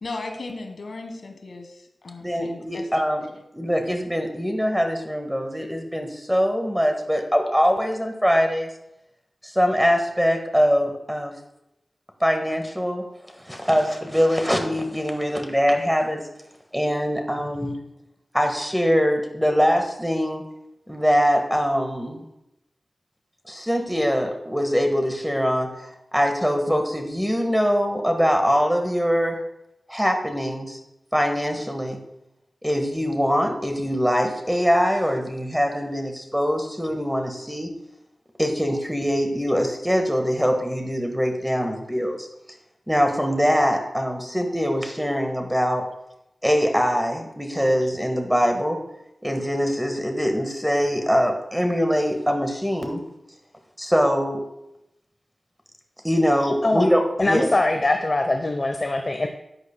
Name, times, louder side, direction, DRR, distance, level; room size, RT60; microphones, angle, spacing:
voice 1, 0.0-2.9 3.2-3.3, left 3 dB, 70° left, 5 dB, 1.5 m, -36 dB
voice 2, 2.2-3.2 3.5-8.7 9.4-11.3 12.2-13.0 13.4-16.2 16.7-17.8 18.3-20.4 20.9-22.2 23.5-25.7 26.1-29.4 29.9-30.8 31.1-32.0 32.6-37.7 38.4-42.3 42.9-45.9 46.4-48.8 49.2-53.0 53.8-54.4 56.0-57.5, equal, 5° right, 4 dB, 1.6 m, -23 dB
voice 3, 56.6-56.9 57.2-59.3, left 2 dB, 40° left, 5 dB, 0.8 m, -22 dB
14.0 x 9.5 x 2.3 m, 0.85 s
wide cardioid pair, 80°, 0 cm